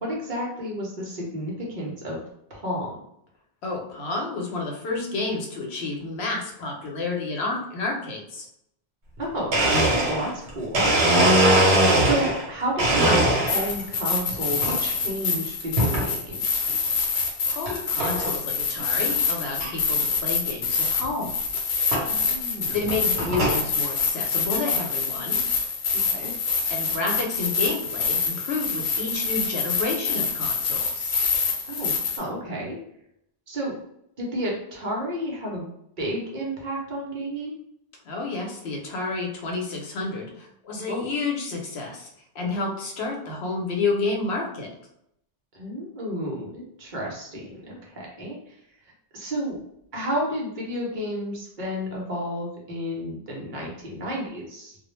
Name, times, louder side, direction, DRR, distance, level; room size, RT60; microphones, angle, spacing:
voice 1, 0.0-2.2 2.5-2.9 9.2-9.5 10.1-10.9 12.0-16.4 22.1-22.8 25.9-26.3 31.7-32.8 33.5-33.7 34.2-35.7 36.0-37.5 40.9-41.1 45.5-48.6 49.1-49.6 49.9-54.8, equal, 55° right, -3 dB, 0.8 m, -31 dB
voice 2, 3.6-8.5 17.5-21.4 21.8-22.0 22.7-25.4 26.7-31.2 38.0-42.1 42.3-44.7, left 3 dB, 85° left, 0 dB, 0.9 m, -30 dB
Domestic sounds home sounds, 9.2-9.3 9.5-12.5 12.8-13.8 14.3-14.8 15.8-16.1 16.7-16.8 17.7-17.8 18.0-18.3 18.8-18.9 19.1-19.2 19.6-19.7 21.0-21.1 21.9-22.1 22.7-23.6, right 1 dB, 75° right, 1.0 m, -21 dB
sound 1, 13.5-32.2, left 5 dB, 55° left, 0.6 m, -26 dB
2.4 x 2.0 x 3.0 m, 0.75 s
omnidirectional pair, 1.1 m